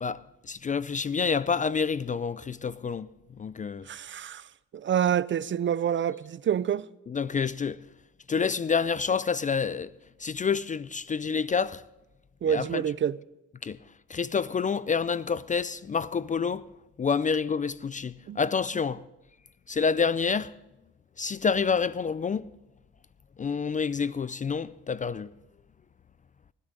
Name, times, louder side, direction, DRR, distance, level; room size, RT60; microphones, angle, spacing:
voice 1, 0.0-3.1 3.4-3.9 7.1-7.8 8.3-9.9 10.2-11.8 12.5-12.8 13.6-13.8 14.1-16.7 17.0-19.0 19.7-20.5 21.2-22.5 23.4-25.3, left 5 dB, 25° left, 0.4 m, -28 dB
voice 2, 3.9-4.4 4.7-6.8 12.4-13.2 18.3-18.4, right 9 dB, 40° right, 0.5 m, -27 dB
19.5 x 12.0 x 3.9 m
cardioid pair, 90°, 30 cm